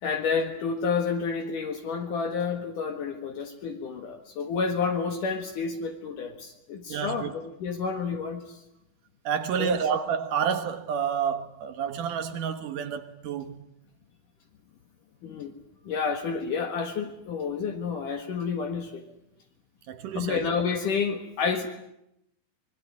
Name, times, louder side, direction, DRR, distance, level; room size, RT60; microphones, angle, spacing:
voice 1, 0.0-8.6 9.6-9.8 15.2-15.5 15.8-19.0 20.2-21.7, left 5 dB, 60° left, 3.0 m, -30 dB
voice 2, 6.9-7.3 9.2-13.7 19.9-20.5, right 7 dB, 65° right, 2.6 m, -29 dB
25.0 x 22.0 x 9.7 m
omnidirectional pair, 4.4 m